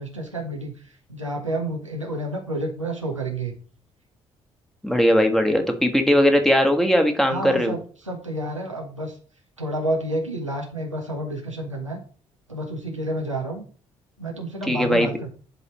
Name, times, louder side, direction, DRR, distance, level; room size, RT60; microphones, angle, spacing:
voice 1, 0.0-3.5 7.3-9.2 9.6-12.0 12.5-13.6 14.2-15.3, right 1 dB, 90° right, 1 dB, 0.9 m, -30 dB
voice 2, 4.8-7.7 14.7-15.1, equal, ahead, 4 dB, 1.5 m, -19 dB
11.0 x 4.1 x 3.0 m, 0.41 s
figure-of-eight pair, 45°, 16 cm